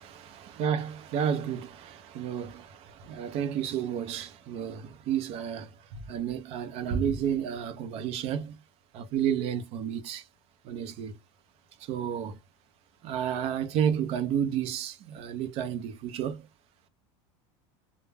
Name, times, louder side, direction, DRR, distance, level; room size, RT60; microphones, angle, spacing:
voice 1, 0.2-8.6 8.9-10.2 10.6-11.2 11.8-12.4 13.0-16.5, right 8 dB, 40° right, 0.5 m, -31 dB
2.2 x 2.0 x 3.3 m
supercardioid pair, 150°, 15 cm